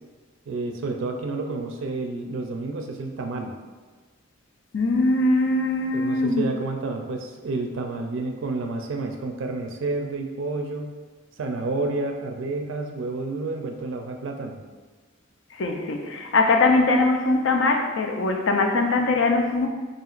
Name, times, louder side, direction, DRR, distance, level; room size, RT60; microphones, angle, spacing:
voice 1, 0.5-3.5 5.9-10.9 11.4-14.6, right 3 dB, 70° right, 3 dB, 0.4 m, -30 dB
voice 2, 4.7-6.4 15.6-19.7, left 2 dB, 65° left, 3 dB, 0.4 m, -21 dB
5.7 x 2.8 x 2.4 m, 1.4 s
head